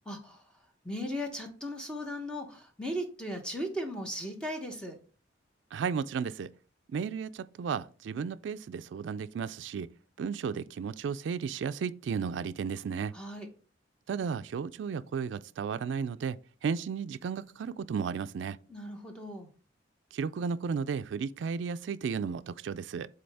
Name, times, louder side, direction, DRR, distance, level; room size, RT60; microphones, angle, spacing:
voice 1, 0.1-5.0 13.1-13.5 18.7-19.5, equal, 5° left, 1.0 m, -37 dB
voice 2, 5.7-6.5 6.9-9.9 10.2-13.1 14.1-18.6 20.1-23.1, right 6 dB, 80° right, 0.3 m, -34 dB
7.6 x 4.0 x 3.4 m
head